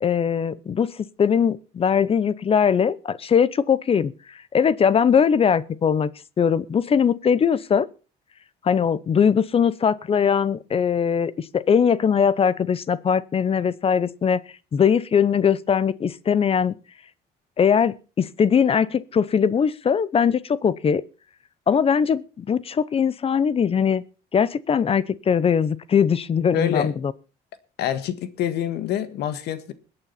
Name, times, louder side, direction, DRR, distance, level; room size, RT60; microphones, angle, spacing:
voice 1, 0.0-4.1 4.5-6.1 6.4-7.9 8.6-14.4 14.7-16.7 17.6-21.0 21.7-24.0 24.3-27.1, left 7 dB, 35° left, 0.7 m, -20 dB
voice 2, 26.5-26.9 27.8-29.7, left 10 dB, 75° left, 1.6 m, -26 dB
21.5 x 8.8 x 4.2 m
cardioid pair, 110°, 17 cm